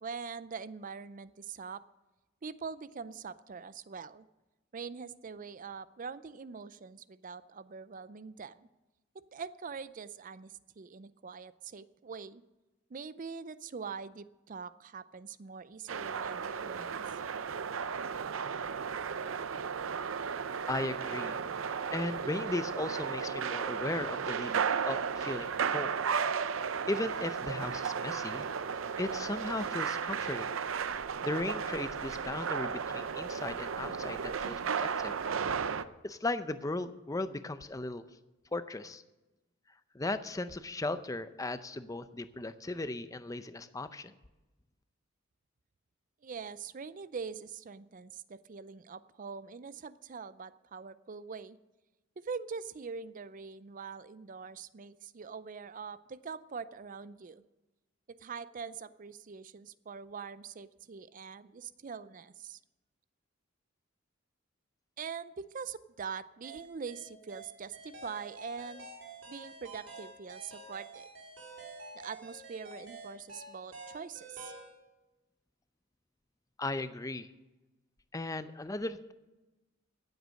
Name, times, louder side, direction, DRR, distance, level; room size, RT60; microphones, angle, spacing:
voice 1, 0.0-1.8 2.4-4.3 4.7-8.7 9.3-12.4 12.9-17.0 46.2-51.6 52.2-57.4 58.1-62.6 65.0-68.9 69.3-71.1 71.9-74.5, right 5 dB, 40° right, 16 dB, 0.5 m, -43 dB
sound 1, 15.9-35.8, right 6 dB, 90° right, 0.6 m, -34 dB
voice 2, 20.7-25.9 26.9-28.5 29.0-30.5 31.2-35.2 36.0-38.0 38.5-39.0 39.9-44.1 76.6-77.3 78.1-79.1, left 2 dB, 15° left, 12 dB, 0.5 m, -37 dB
sound 2, 66.4-74.7, right 2 dB, 65° right, 3.0 m, -48 dB
15.5 x 8.1 x 6.4 m, 1.1 s
head